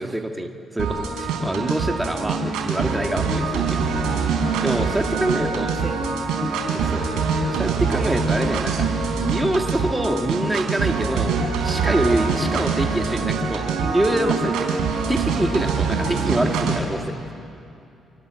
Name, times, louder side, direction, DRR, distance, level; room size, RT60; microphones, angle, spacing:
voice 1, 0.0-4.0 4.3-5.7 6.7-8.7 9.2-11.3 11.6-14.8 15.1-17.1, right 1 dB, 10° right, 3 dB, 2.0 m, -25 dB
sound 1, 0.8-16.8, right 4 dB, 90° right, 4.7 m, -24 dB
voice 2, 5.1-6.3, right 3 dB, 35° right, 4 dB, 2.1 m, -36 dB
30.0 x 25.5 x 7.6 m, 2.7 s
cardioid pair, 90°, 0 cm